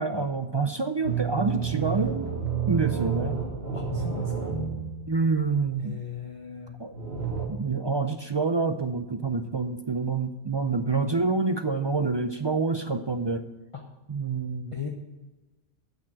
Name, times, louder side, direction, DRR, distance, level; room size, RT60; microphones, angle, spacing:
voice 1, 0.0-2.3 2.7-3.4 5.1-6.0 6.8-6.9 7.5-13.4 14.1-14.7, right 4 dB, 45° right, 8 dB, 0.3 m, -27 dB
sound 1, 1.0-5.3 6.9-7.5, right 6 dB, 70° right, 1.9 m, -30 dB
voice 2, 3.7-4.5 5.8-6.8 13.7-13.8 14.7-14.9, left 6 dB, 30° left, 1 dB, 0.9 m, -37 dB
8.8 x 6.5 x 8.4 m, 1.1 s
omnidirectional pair, 1.1 m